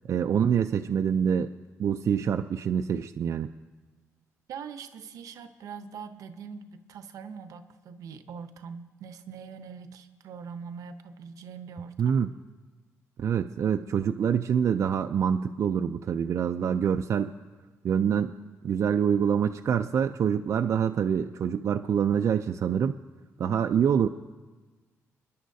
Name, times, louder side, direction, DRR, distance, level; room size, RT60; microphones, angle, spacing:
voice 1, 0.1-1.5 1.8-3.5 12.0-12.3 13.2-17.3 17.8-18.4 18.6-23.0 23.4-24.1, right 8 dB, 60° right, 5 dB, 0.4 m, -25 dB
voice 2, 4.5-12.2, right 6 dB, 80° right, 10 dB, 0.7 m, -42 dB
29.5 x 10.5 x 2.7 m, 1.3 s
cardioid pair, 85°, 6 cm